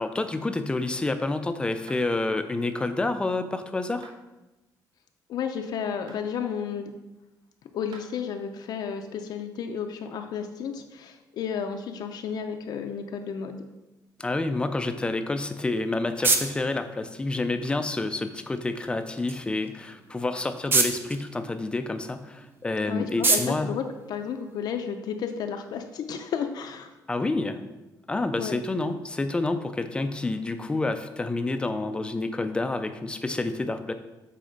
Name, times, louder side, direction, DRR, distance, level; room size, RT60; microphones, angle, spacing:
voice 1, 0.0-4.2 14.2-23.7 27.1-27.6 28.1-33.9, left 2 dB, 15° left, 9 dB, 0.4 m, -28 dB
sound 1, 1.9-2.1 4.0-4.2 6.1-6.3 7.9-8.1, right 3 dB, 70° right, 1.1 m, -47 dB
voice 2, 5.3-6.9 7.7-13.7 22.9-26.9 28.4-28.5, left 7 dB, 60° left, 5 dB, 0.5 m, -32 dB
sound 2, 15.4-24.9, right 3 dB, 30° right, 0.7 m, -31 dB
7.7 x 4.2 x 5.1 m, 1.0 s
cardioid pair, 175°, 8 cm